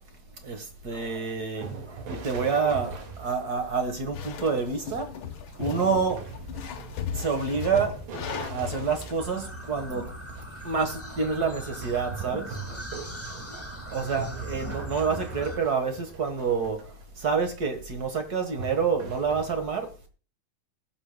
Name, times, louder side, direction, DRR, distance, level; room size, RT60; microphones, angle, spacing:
voice 1, 0.4-5.1 5.6-6.2 6.6-6.7 7.1-7.9 8.2-10.0 10.6-12.4 13.5-20.1, right 5 dB, 55° right, 1.1 m, -28 dB
sound 1, 1.6-4.1 5.6-10.3 11.7-17.0 17.4-17.7 18.6-19.5, right 5 dB, 90° right, 3.7 m, -41 dB
sound 2, 4.1-9.2, left 8 dB, 75° left, 1.2 m, -37 dB
sound 3, 9.2-15.6, right 1 dB, 15° left, 0.5 m, -40 dB
20.5 x 6.9 x 2.2 m
omnidirectional pair, 3.8 m